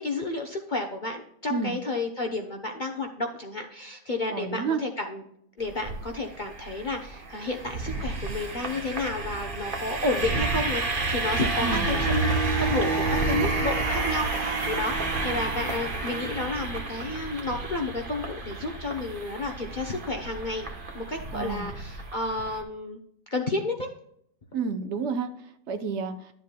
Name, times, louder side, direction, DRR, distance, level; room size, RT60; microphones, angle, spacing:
voice 1, 0.0-5.2 5.6-20.7 20.9-23.0 23.3-23.9, left 2 dB, 45° left, 3 dB, 0.7 m, -31 dB
voice 2, 4.3-4.8 11.6-11.8 21.3-21.7 24.5-25.3 25.7-26.1, right 5 dB, 50° right, 7 dB, 0.9 m, -29 dB
sound 1, 5.6-22.6, right 3 dB, 35° right, 1.2 m, -30 dB
12.0 x 7.4 x 2.2 m, 0.70 s
omnidirectional pair, 1.8 m